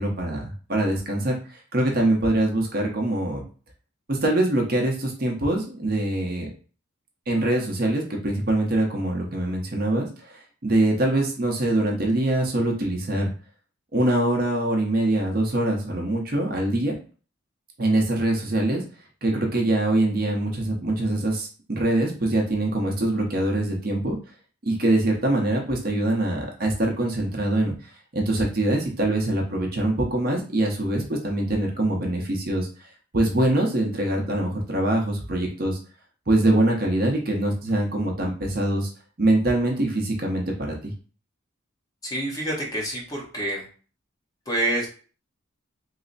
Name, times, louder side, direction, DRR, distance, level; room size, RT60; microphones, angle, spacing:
voice 1, 0.0-3.4 4.1-6.5 7.3-13.3 13.9-17.0 17.8-18.8 19.2-24.2 24.7-35.8 36.3-38.9 39.2-40.9, right 1 dB, 45° right, 0 dB, 0.7 m, -24 dB
voice 2, 42.0-43.6 44.5-44.9, right 1 dB, 20° left, -4 dB, 0.8 m, -27 dB
3.2 x 2.0 x 3.9 m, 0.39 s
head